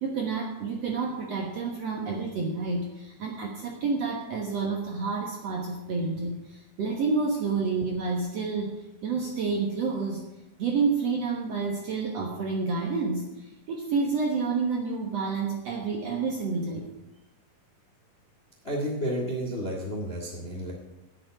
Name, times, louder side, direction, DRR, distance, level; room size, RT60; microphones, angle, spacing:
voice 1, 0.0-10.2 10.6-16.9, right 4 dB, 60° right, 1 dB, 1.9 m, -29 dB
voice 2, 18.6-20.7, equal, 25° left, 0 dB, 1.3 m, -31 dB
9.5 x 7.8 x 9.1 m, 0.93 s
omnidirectional pair, 4.3 m